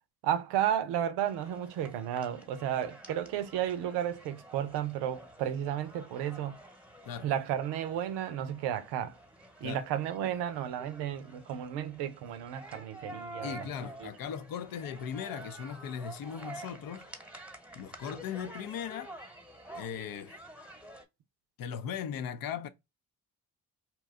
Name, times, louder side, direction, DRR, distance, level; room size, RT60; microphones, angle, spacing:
voice 1, 0.2-6.6 7.2-9.2 9.6-13.7 14.0-14.1, right 10 dB, 85° right, 0.6 m, -33 dB
sound 1, 1.2-21.0, right 1 dB, 5° right, 1.0 m, -49 dB
voice 2, 13.4-17.1 17.7-19.1 19.8-20.4 21.6-22.7, left 8 dB, 60° left, 0.6 m, -38 dB
2.9 x 2.2 x 3.4 m
supercardioid pair, 55°, 40 cm